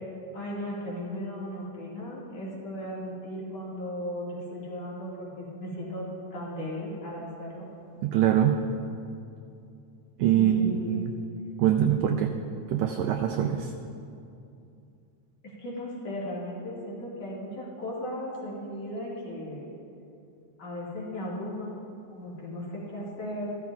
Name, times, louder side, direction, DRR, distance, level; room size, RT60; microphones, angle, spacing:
voice 1, 0.3-6.0 6.3-7.7 10.3-11.0 15.4-19.7 20.6-21.8 22.1-23.6, left 1 dB, 55° left, -6 dB, 2.9 m, -36 dB
voice 2, 8.0-8.6 10.2-11.1 11.6-12.3 12.7-13.7, right 10 dB, 85° right, 4 dB, 1.5 m, -24 dB
14.5 x 13.0 x 2.3 m, 2.6 s
omnidirectional pair, 3.5 m